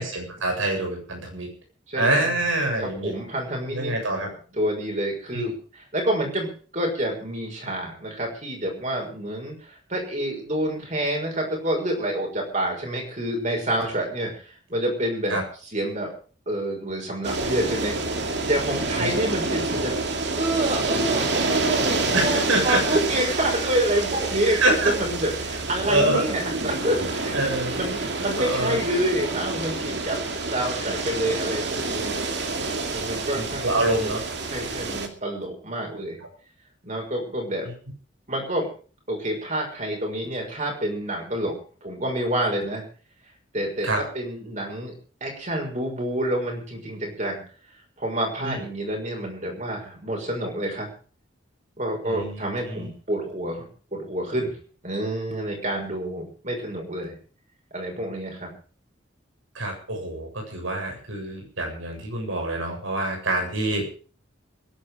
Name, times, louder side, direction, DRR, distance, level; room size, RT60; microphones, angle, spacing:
voice 1, 0.0-1.5 1.9-3.1 3.7-4.3 5.3-5.5 15.3-15.4 19.0-19.2 22.1-23.0 24.5-25.0 25.9-26.3 27.3-27.8 28.4-28.8 33.3-34.2 37.6-37.7 43.8-44.0 48.4-48.6 52.0-52.9 59.5-64.0, right 1 dB, 90° right, 2 dB, 7.7 m, -26 dB
voice 2, 1.9-2.3 2.8-3.9 4.5-14.3 14.7-15.4 15.7-16.1 16.5-20.1 20.4-27.4 27.7-32.2 32.9-33.8 34.4-36.2 36.8-37.7 38.3-38.7 39.1-41.5 41.8-42.8 43.5-43.9 44.1-44.9 45.2-47.4 48.0-50.9 51.8-53.6 53.9-54.6 54.8-57.2 57.7-58.5, right 1 dB, 40° right, 1 dB, 6.2 m, -28 dB
sound 1, 17.2-35.1, right 3 dB, 60° right, 2.4 m, -28 dB
22.5 x 11.5 x 5.0 m, 0.41 s
head